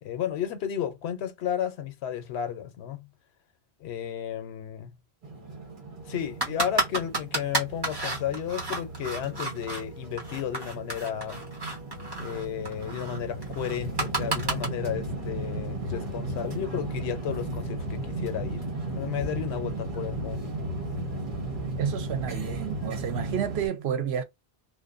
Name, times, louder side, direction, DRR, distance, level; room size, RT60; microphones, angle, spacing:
voice 1, 0.0-3.1 3.8-5.0 6.1-11.4 12.2-20.6, left 10 dB, 85° left, 0.9 m, -33 dB
sound 1, 5.2-23.7, right 2 dB, 50° right, 1.1 m, -35 dB
sound 2, 6.4-9.8 10.2-14.7, right 2 dB, 25° right, 1.1 m, -31 dB
voice 2, 21.8-24.2, right 8 dB, 80° right, 0.8 m, -30 dB
2.5 x 2.1 x 2.4 m
omnidirectional pair, 1.1 m